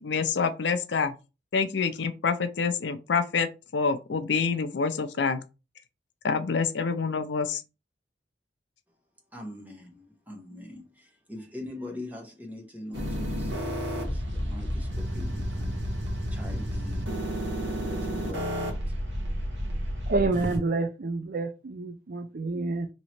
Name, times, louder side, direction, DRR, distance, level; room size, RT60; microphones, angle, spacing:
voice 1, 0.0-1.1 1.5-5.4 6.2-7.6, left 5 dB, 70° left, 0.5 m, -27 dB
voice 2, 9.3-19.0, left 1 dB, 10° right, 1.1 m, -43 dB
sound 1, 12.9-20.6, equal, 70° right, 1.1 m, -31 dB
voice 3, 20.1-22.9, right 3 dB, 50° right, 0.5 m, -28 dB
3.0 x 2.9 x 4.2 m
head